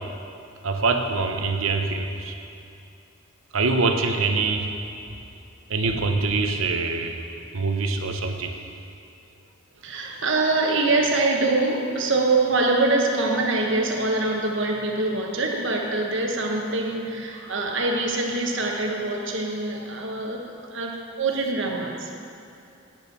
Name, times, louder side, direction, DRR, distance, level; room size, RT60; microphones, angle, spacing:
voice 1, 0.6-2.3 3.5-4.7 5.7-7.2 7.5-8.5, right 3 dB, 80° right, 5 dB, 0.9 m, -24 dB
voice 2, 9.8-22.1, right 2 dB, 60° right, 1 dB, 1.2 m, -24 dB
9.0 x 8.4 x 6.0 m, 2.7 s
head